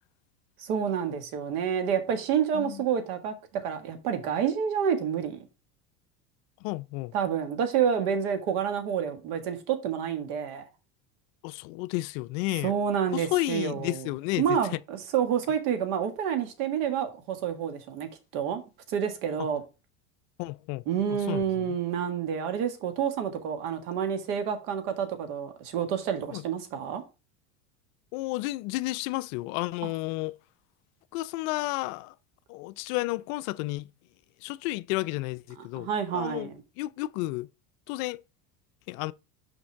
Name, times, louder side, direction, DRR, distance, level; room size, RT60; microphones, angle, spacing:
voice 1, 0.6-3.3 3.6-5.4 7.1-10.6 12.6-14.1 14.4-18.6 18.9-19.6 20.9-27.0 35.7-36.6, right 8 dB, 65° right, 1.7 m, -28 dB
voice 2, 6.6-7.1 11.4-12.7 13.1-14.4 19.4-19.5 20.4-21.8 26.3-26.4 28.1-30.4 31.1-32.1 32.5-33.9 34.4-37.5 37.9-38.2 38.9-39.1, left 19 dB, 60° left, 0.5 m, -32 dB
6.1 x 5.3 x 4.6 m
hypercardioid pair, 100°, 47 cm